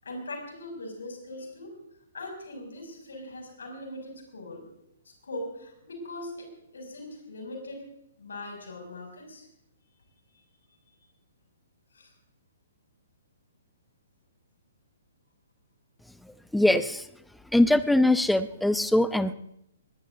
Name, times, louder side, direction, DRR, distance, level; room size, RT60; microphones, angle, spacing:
voice 1, 0.0-1.7 2.1-4.6 5.2-7.8 8.2-9.5 11.9-12.1, left 1 dB, 65° left, 3 dB, 6.3 m, -40 dB
voice 2, 16.5-17.1 17.5-19.3, left 1 dB, ahead, 15 dB, 0.6 m, -22 dB
21.5 x 20.0 x 2.7 m, 0.79 s
figure-of-eight pair, 120°, 0 cm